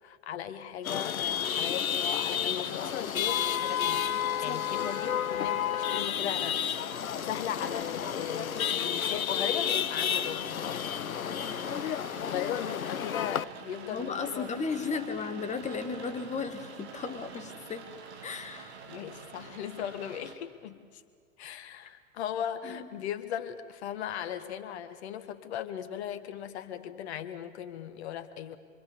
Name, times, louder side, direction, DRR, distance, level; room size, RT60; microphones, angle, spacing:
voice 1, 0.0-4.0 4.4-11.8 12.3-14.5 18.9-21.0 21.4-28.6, left 9 dB, 50° left, 10 dB, 1.9 m, -38 dB
Chatter / Vehicle horn car horn honking / Traffic noise roadway noise, 0.8-13.4, left 9 dB, 80° left, 0.6 m, -31 dB
Rain, 1.3-20.3, right 6 dB, 50° right, 3.3 m, -48 dB
voice 2, 13.9-17.9 18.2-18.8 22.6-22.9, left 5 dB, 15° left, 8 dB, 2.0 m, -35 dB
26.5 x 26.0 x 7.1 m, 2.2 s
figure-of-eight pair, 95°, 41 cm